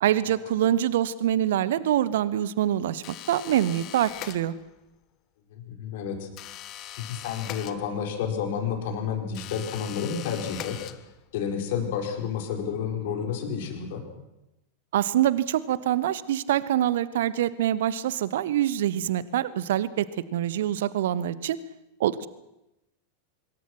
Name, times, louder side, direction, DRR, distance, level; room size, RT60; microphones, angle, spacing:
voice 1, 0.0-4.5 14.9-21.6 22.0-22.3, right 11 dB, 55° right, 18 dB, 1.0 m, -25 dB
sound 1, 3.0-4.9 6.4-8.3 9.3-11.4, left 13 dB, 35° left, 1.3 m, -41 dB
voice 2, 5.5-6.6 7.0-10.8 11.3-14.0, left 7 dB, 50° left, 3 dB, 4.6 m, -30 dB
25.5 x 22.0 x 6.1 m, 0.91 s
figure-of-eight pair, 90°, 0 cm